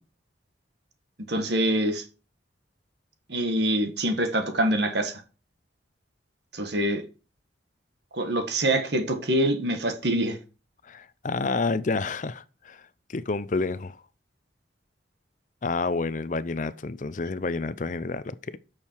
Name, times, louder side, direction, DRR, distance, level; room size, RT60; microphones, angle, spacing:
voice 1, 1.3-2.0 3.3-5.2 6.5-7.0 8.1-10.4, right 1 dB, 65° right, 1.7 m, -25 dB
voice 2, 10.8-12.8 13.1-14.0 15.6-18.6, left 3 dB, 45° left, 0.5 m, -29 dB
8.7 x 6.5 x 4.5 m
head